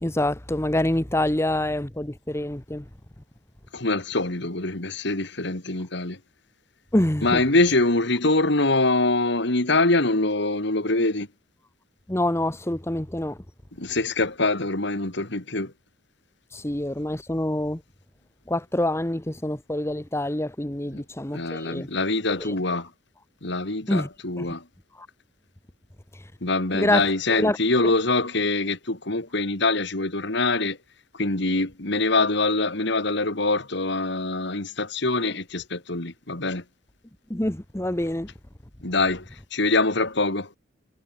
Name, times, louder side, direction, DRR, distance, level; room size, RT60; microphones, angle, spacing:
voice 1, 0.0-2.8 6.9-7.4 12.1-13.4 16.5-17.8 18.5-21.9 22.4-22.5 23.9-24.1 24.4-24.5 25.0-25.1 26.7-27.6 37.3-38.3, left 1 dB, 15° left, 1.1 m, -26 dB
voice 2, 3.7-6.2 7.2-11.3 13.8-15.7 20.9-21.0 21.3-22.9 23.4-24.6 26.4-30.8 31.1-36.6 38.8-40.5, left 2 dB, 60° left, 2.7 m, -24 dB
head